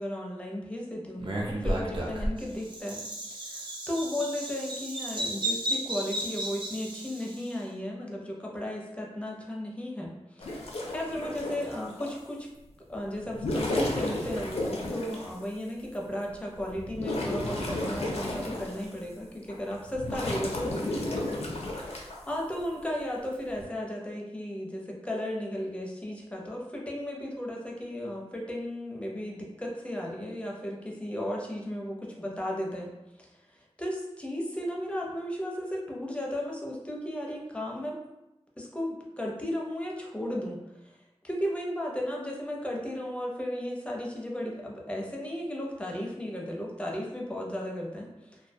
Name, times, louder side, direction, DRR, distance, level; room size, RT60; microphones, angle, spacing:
voice 1, 0.0-3.0 3.3-12.5 12.9-21.2 21.5-32.9 33.2-38.0 38.6-40.6 40.8-40.9 41.2-48.4, left 1 dB, 10° left, -2 dB, 0.5 m, -35 dB
Bird vocalization bird call bird song, 1.2-7.5, right 1 dB, 50° right, 0.5 m, -33 dB
sound 1, 10.4-12.2 13.2-15.3 15.9-16.0 16.5-19.0 19.5-22.2 23.3-23.6, left 1 dB, 85° left, 0.4 m, -33 dB
2.2 x 2.2 x 2.6 m, 0.94 s
wide cardioid pair, 85°, 10 cm